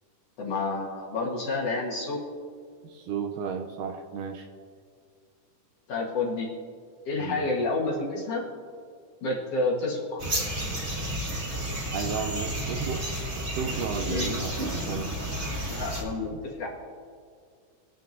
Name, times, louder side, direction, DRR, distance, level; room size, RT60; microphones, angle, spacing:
voice 1, 0.4-2.2 5.9-6.5 7.1-8.5 9.2-10.2 14.1-14.4 15.7-16.7, left 3 dB, 55° left, -3 dB, 2.1 m, -29 dB
voice 2, 2.9-4.5 7.2-7.5 11.9-13.1 13.6-14.5 14.9-15.1 16.3-16.4, right 6 dB, 80° right, 5 dB, 2.1 m, -33 dB
sound 1, 10.2-16.0, right 1 dB, 35° right, 1.1 m, -31 dB
25.5 x 9.1 x 2.6 m, 2.1 s
omnidirectional pair, 4.0 m